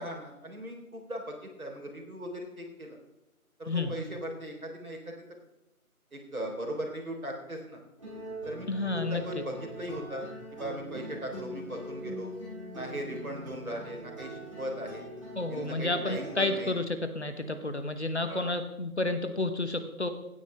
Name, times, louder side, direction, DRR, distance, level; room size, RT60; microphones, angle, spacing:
voice 1, 0.0-3.0 3.6-5.1 6.1-7.8 8.4-8.7 8.9-12.3 12.7-15.1 15.5-16.7 18.3-18.5, equal, 70° right, 1 dB, 3.6 m, -38 dB
sound 1, 8.0-16.5, right 1 dB, 20° right, 3.0 m, -42 dB
voice 2, 8.7-9.2 15.3-16.8 17.1-20.1, left 2 dB, 50° left, 9 dB, 1.2 m, -30 dB
16.5 x 9.2 x 3.4 m, 0.94 s
figure-of-eight pair, 170°, 44 cm